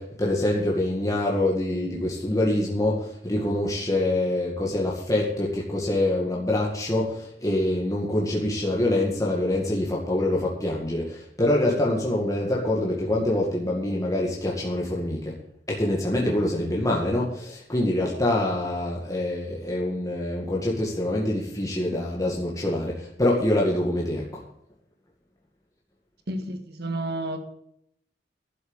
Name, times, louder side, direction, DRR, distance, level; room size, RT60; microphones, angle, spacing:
voice 1, 0.0-15.4 15.7-24.4, left 1 dB, 20° left, -3 dB, 2.0 m, -25 dB
voice 2, 26.3-27.4, right 1 dB, 60° right, 6 dB, 1.7 m, -30 dB
12.0 x 7.4 x 8.0 m, 0.72 s
head